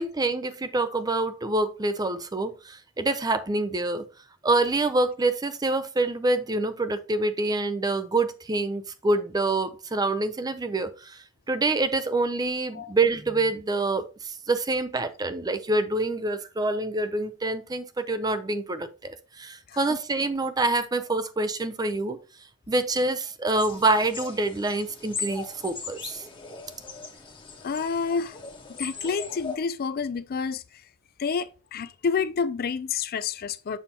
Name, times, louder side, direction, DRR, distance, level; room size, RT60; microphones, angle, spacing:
voice 1, 0.0-4.1 4.4-11.2 11.5-22.2 22.7-26.6, right 2 dB, 20° right, 0.5 m, -26 dB
sound 1, 23.6-29.6, left 5 dB, 25° left, 1.1 m, -39 dB
voice 2, 27.6-28.4 28.8-30.6 31.2-33.8, left 5 dB, 45° left, 0.4 m, -29 dB
7.0 x 5.7 x 2.9 m
head